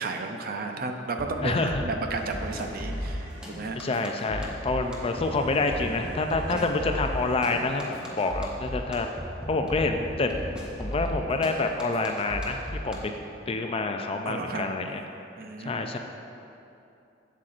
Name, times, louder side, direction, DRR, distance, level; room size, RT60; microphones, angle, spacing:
voice 1, 0.0-4.0 6.5-6.6 14.2-14.7 15.4-16.0, right 3 dB, 50° right, 5 dB, 0.5 m, -33 dB
sound 1, 1.2-12.9, equal, 5° right, 0.8 m, -35 dB
voice 2, 1.4-1.8 3.7-9.1 9.5-10.3 10.8-13.1 13.5-15.0 15.6-16.0, left 3 dB, 30° left, 5 dB, 0.4 m, -27 dB
sound 2, 2.1-3.6 4.7-8.2 9.2-12.2, right 1 dB, 75° right, 1.3 m, -49 dB
7.7 x 7.4 x 2.5 m, 2.8 s
head